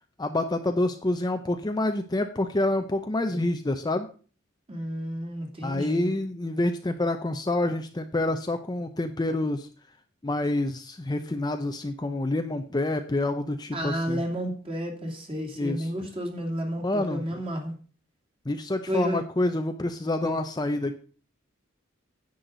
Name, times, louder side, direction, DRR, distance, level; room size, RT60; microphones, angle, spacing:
voice 1, 0.2-4.1 5.6-9.7 10.2-14.2 15.6-15.9 16.8-17.4 18.5-21.0, left 2 dB, 20° left, 6 dB, 0.6 m, -27 dB
voice 2, 4.7-6.1 13.7-17.7 18.9-19.2 20.2-20.4, equal, 30° right, 1 dB, 2.6 m, -31 dB
10.5 x 8.5 x 3.9 m, 0.38 s
head